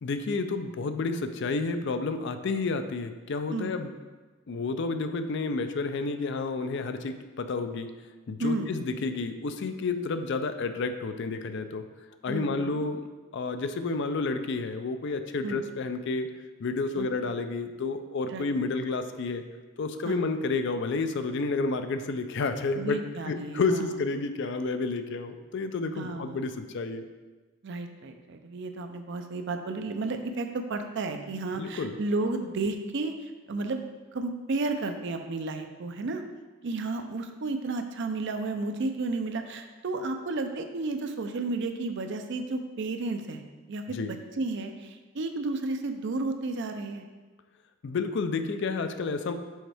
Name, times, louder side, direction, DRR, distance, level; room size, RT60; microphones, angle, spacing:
voice 1, 0.0-3.9 4.5-7.9 8.3-11.8 12.2-13.1 13.3-16.3 16.6-19.4 19.8-23.0 23.2-27.1 31.6-32.0 43.9-44.1 47.8-49.3, left 3 dB, 60° left, 9 dB, 0.4 m, -30 dB
voice 2, 8.4-8.7 12.2-12.8 15.4-15.6 16.9-17.1 18.3-18.5 20.0-20.2 22.7-23.9 25.9-26.4 27.6-33.8 34.1-36.2 36.6-43.4 43.7-44.0 44.4-47.0, right 3 dB, 60° right, 6 dB, 0.5 m, -32 dB
6.3 x 4.5 x 3.4 m, 1.3 s
head